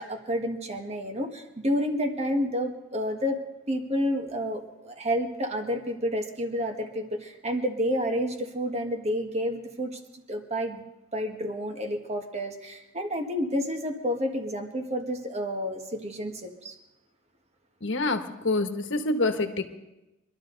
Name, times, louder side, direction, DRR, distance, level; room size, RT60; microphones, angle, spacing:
voice 1, 0.0-10.8 11.1-16.7, equal, 35° right, 4 dB, 1.6 m, -30 dB
voice 2, 17.8-19.6, left 2 dB, 65° left, 7 dB, 1.3 m, -26 dB
24.0 x 12.5 x 4.0 m, 0.97 s
head